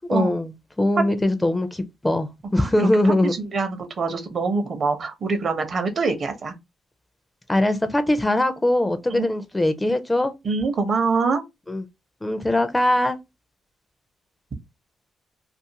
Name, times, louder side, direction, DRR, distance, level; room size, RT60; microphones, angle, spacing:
voice 1, 0.1-0.5 0.8-3.4 7.5-10.3 11.7-11.8 12.2-13.2, left 1 dB, 10° left, 0.4 m, -21 dB
voice 2, 2.5-6.5 9.1-9.3 10.4-11.4, right 4 dB, 45° right, 0.7 m, -25 dB
2.5 x 2.4 x 2.8 m
cardioid pair, 90°, 0 cm